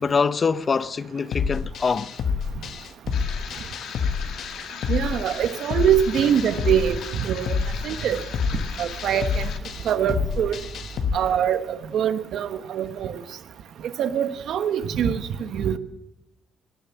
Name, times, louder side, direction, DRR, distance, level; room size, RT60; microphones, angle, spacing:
voice 1, 0.0-2.1, left 5 dB, 35° left, 0.6 m, -24 dB
sound 1, 1.3-11.2, left 6 dB, 65° left, 1.2 m, -28 dB
sound 2, 3.1-9.6, left 7 dB, 85° left, 2.0 m, -39 dB
voice 2, 4.9-7.6 7.8-8.2 8.8-9.5 9.8-10.6 11.1-13.2 14.0-15.8, right 9 dB, 70° right, 1.2 m, -24 dB
Growling, 6.1-11.1, right 5 dB, 40° right, 4.0 m, -42 dB
17.5 x 10.5 x 7.3 m
cardioid pair, 105°, 0 cm